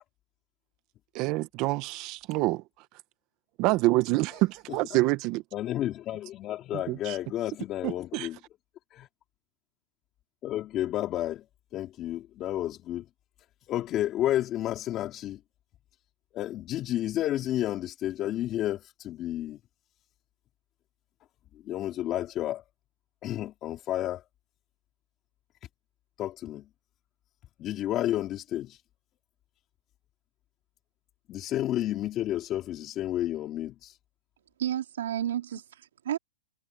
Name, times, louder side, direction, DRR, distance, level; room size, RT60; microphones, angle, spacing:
voice 1, 1.1-2.6 3.6-5.4 6.9-7.2 7.8-8.3, right 20 dB, 40° right, 1.4 m, -27 dB
voice 2, 5.5-8.4 8.9-9.1 10.4-11.5 11.7-13.1 13.7-15.4 16.3-19.6 21.5-22.6 23.2-24.2 26.2-26.7 27.6-28.8 31.3-34.0, left 13 dB, 30° left, 2.9 m, -31 dB
voice 3, 34.6-36.2, right 11 dB, 80° right, 3.4 m, -31 dB
hypercardioid pair, 140°, 0 cm